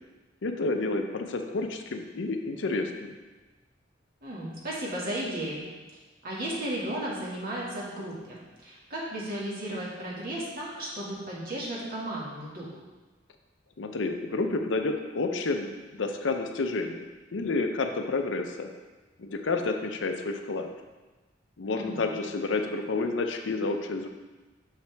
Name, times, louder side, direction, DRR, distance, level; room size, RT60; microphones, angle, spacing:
voice 1, 0.4-3.1 13.8-17.1 17.3-18.7 19.2-20.7 21.6-24.1, left 3 dB, 70° left, 5 dB, 0.6 m, -30 dB
voice 2, 4.2-5.6 6.2-12.7 21.8-22.1, right 1 dB, 50° right, -6 dB, 1.8 m, -34 dB
6.6 x 5.7 x 3.4 m, 1.2 s
head